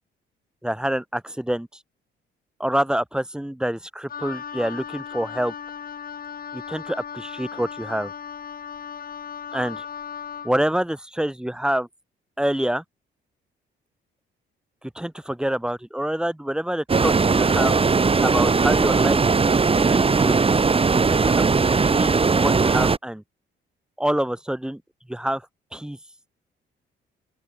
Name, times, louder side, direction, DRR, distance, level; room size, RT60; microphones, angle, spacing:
voice 1, 0.6-1.7 2.6-5.5 6.5-8.1 9.5-9.8 10.4-11.9 12.4-12.8 14.9-17.7 18.2-19.2 19.7-20.4 20.9-23.2 24.0-24.8 25.1-25.4 25.7-26.0, right 1 dB, 5° right, 3.1 m, -26 dB
Wind instrument woodwind instrument, 4.1-10.5, left 7 dB, 50° left, 5.1 m, -36 dB
sound 1, 16.9-23.0, right 4 dB, 30° right, 2.3 m, -19 dB
open air
cardioid pair, 90°, 20 cm